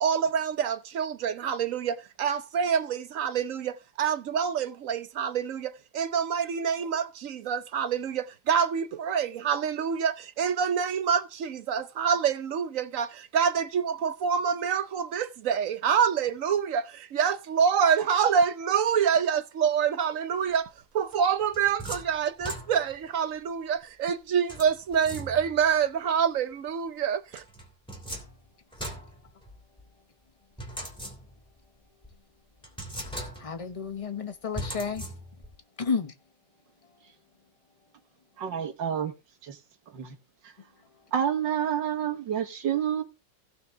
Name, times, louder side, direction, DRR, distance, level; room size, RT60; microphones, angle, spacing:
voice 1, 0.0-20.7 20.9-27.4, right 7 dB, 60° right, 0.9 m, -26 dB
sound 1, 21.1-23.1 24.5-25.7 27.3-29.8 30.6-31.6 32.0-32.1 32.6-33.7 34.5-35.6, right 1 dB, 5° left, 2.8 m, -40 dB
voice 2, 33.4-35.1 35.8-36.1, left 5 dB, 35° left, 0.5 m, -31 dB
voice 3, 38.4-39.1 39.4-39.6 39.9-40.2 40.4-40.5 41.1-43.0, right 9 dB, 85° right, 2.1 m, -28 dB
16.5 x 6.0 x 3.5 m
omnidirectional pair, 1.9 m